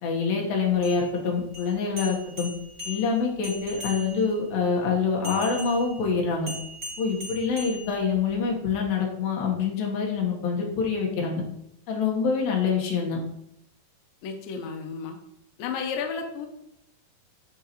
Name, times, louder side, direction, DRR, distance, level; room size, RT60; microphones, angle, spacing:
voice 1, 0.0-2.5 2.9-6.5 7.0-11.4 11.9-13.2, left 5 dB, 65° left, -1 dB, 2.8 m, -26 dB
sound 1, 0.7-4.4 5.2-8.4, left 1 dB, 25° right, 1.4 m, -40 dB
voice 2, 14.2-15.2 15.6-16.5, left 6 dB, 85° left, 4 dB, 2.0 m, -32 dB
13.0 x 4.5 x 3.1 m, 0.79 s
omnidirectional pair, 5.3 m